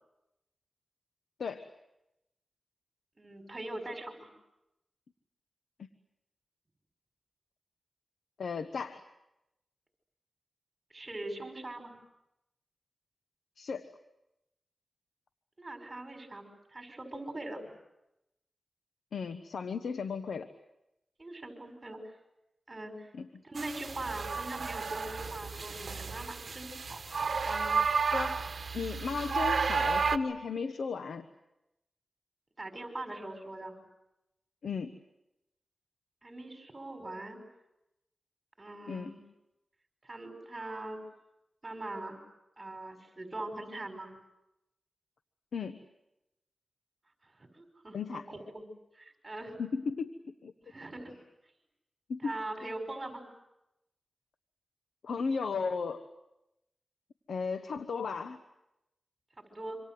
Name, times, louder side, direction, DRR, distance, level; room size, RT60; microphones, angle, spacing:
voice 1, 1.4-1.7 5.8-5.9 8.4-9.0 13.6-13.9 19.1-20.5 23.1-23.3 28.1-28.4 28.7-31.2 34.6-35.0 38.9-39.2 45.5-45.8 47.9-48.3 49.6-50.1 50.4-50.5 52.1-52.3 55.0-56.1 57.3-58.4, left 5 dB, 90° left, 10 dB, 1.1 m, -35 dB
voice 2, 3.2-4.3 10.9-11.9 15.6-17.6 21.2-22.1 22.7-23.1 23.4-27.0 27.4-27.7 32.6-33.8 36.2-37.4 38.6-39.2 40.0-41.0 41.6-42.2 42.6-44.1 47.2-48.7 48.9-49.6 50.6-51.1 52.2-53.2 59.4-59.8, right 2 dB, 35° right, 5 dB, 5.8 m, -42 dB
sound 1, 23.6-30.2, right 5 dB, 65° right, 1.4 m, -32 dB
27.0 x 26.0 x 7.8 m, 0.90 s
cardioid pair, 60°, 0 cm